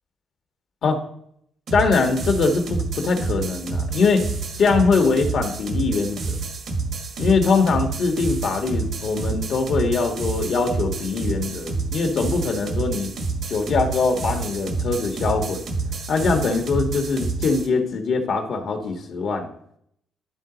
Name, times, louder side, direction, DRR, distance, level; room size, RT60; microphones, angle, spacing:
voice 1, 1.7-4.2 4.6-6.3 7.2-13.1 13.5-15.7 16.1-19.5, left 4 dB, 65° left, 5 dB, 1.4 m, -22 dB
sound 1, 1.7-17.7, right 3 dB, 65° right, 1.5 m, -28 dB
11.5 x 4.0 x 3.9 m, 0.69 s
cardioid pair, 90°, 0 cm